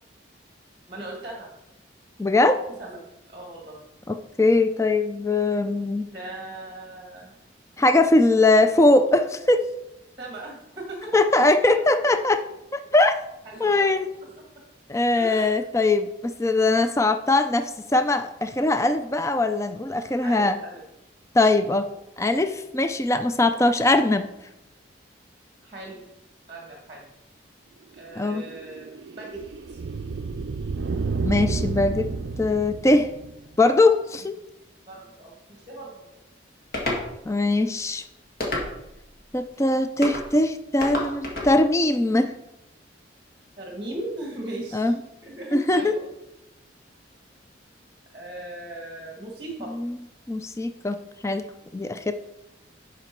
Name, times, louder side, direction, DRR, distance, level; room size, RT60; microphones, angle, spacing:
voice 1, 0.9-1.5 2.8-3.0 3.3-3.8 6.1-7.4 10.2-11.1 11.7-12.0 13.4-13.9 15.2-15.5 20.2-20.8 25.6-26.1 26.5-27.0 27.9-29.4 29.7-29.8 34.9-36.0 43.6-46.0 48.1-49.7, right 1 dB, 25° right, -2 dB, 1.5 m, -38 dB
voice 2, 2.2-2.6 4.1-6.1 7.8-9.7 11.1-12.4 12.7-13.2 13.6-14.1 14.9-20.6 21.3-21.9 22.2-24.3 28.2-28.5 31.2-32.1 32.4-33.1 33.6-34.3 37.3-38.0 39.3-42.3 44.7-44.9 45.5-45.9 49.8-49.9 50.3-51.0 51.2-51.5 51.7-52.1, left 2 dB, 15° left, 9 dB, 0.3 m, -21 dB
sound 1, 28.0-33.6, right 4 dB, 65° right, 0.4 m, -30 dB
sound 2, 36.7-37.0 38.4-39.0 40.0-40.3 40.8-41.5, left 1 dB, 50° left, 1.8 m, -28 dB
11.0 x 4.9 x 4.5 m, 0.92 s
head